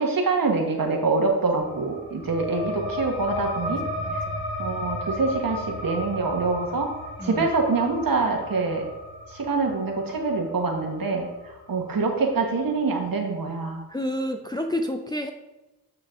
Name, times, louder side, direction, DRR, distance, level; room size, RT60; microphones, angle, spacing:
voice 1, 0.0-3.8 4.6-6.9 7.2-8.9 9.3-11.3 11.7-13.8, right 3 dB, 55° right, 2 dB, 1.5 m, -25 dB
sound 1, 1.6-12.7, left 1 dB, 65° left, 2.3 m, -35 dB
voice 2, 3.7-4.4 7.2-7.5 13.9-15.3, left 1 dB, 10° left, 4 dB, 0.6 m, -30 dB
9.3 x 4.6 x 3.7 m, 1.0 s
cardioid pair, 50°, 40 cm